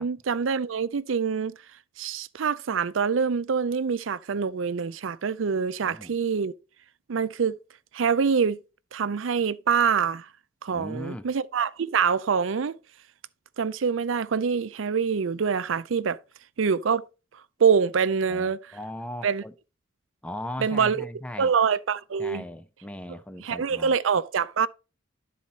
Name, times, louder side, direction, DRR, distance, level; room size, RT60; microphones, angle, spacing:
voice 1, 0.0-1.5 2.0-6.5 7.1-7.6 7.9-8.6 8.9-10.3 10.6-12.8 13.6-16.2 16.6-17.0 17.6-18.6 19.2-19.4 20.6-21.1 21.4-22.4 23.4-24.7, right 6 dB, 85° right, 0.5 m, -25 dB
voice 2, 5.8-6.1 10.7-11.3 18.3-19.5 20.2-21.5 22.2-23.9, left 1 dB, 5° left, 0.6 m, -38 dB
11.5 x 4.2 x 4.1 m
head